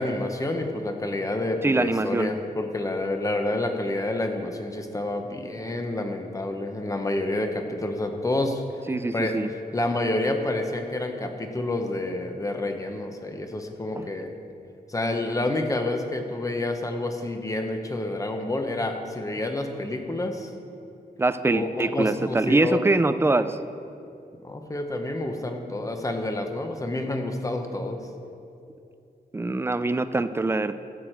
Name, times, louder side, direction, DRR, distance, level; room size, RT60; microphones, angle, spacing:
voice 1, 0.0-8.6 9.1-9.4 9.7-14.3 14.9-20.5 21.5-22.8 24.4-28.0, left 2 dB, 20° left, 4 dB, 0.9 m, -28 dB
voice 2, 1.6-2.3 8.9-9.5 14.0-14.1 21.2-23.6 29.3-30.7, right 2 dB, 15° right, 12 dB, 0.3 m, -23 dB
14.0 x 8.3 x 4.5 m, 2.6 s
wide cardioid pair, 170°, 16 cm